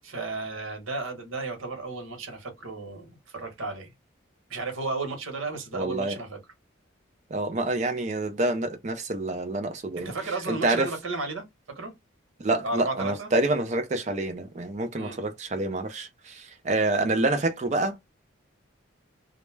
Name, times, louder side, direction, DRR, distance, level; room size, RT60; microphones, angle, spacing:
voice 1, 0.0-3.9 4.5-6.4 10.0-11.9 12.6-13.3 15.0-15.2, right 3 dB, 85° right, 1.0 m, -34 dB
voice 2, 5.7-6.2 7.3-10.1 10.5-10.9 12.4-18.0, right 2 dB, 35° right, 0.4 m, -27 dB
2.2 x 2.0 x 3.1 m
head